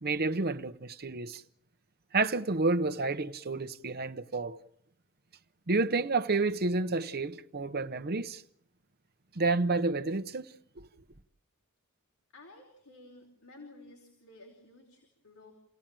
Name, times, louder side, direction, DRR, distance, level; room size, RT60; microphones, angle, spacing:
voice 1, 0.0-1.4 2.1-4.6 5.7-8.4 9.3-10.5, right 3 dB, 45° right, 0.9 m, -30 dB
voice 2, 12.3-15.5, left 2 dB, 70° left, 4.9 m, -53 dB
29.0 x 17.0 x 9.0 m
head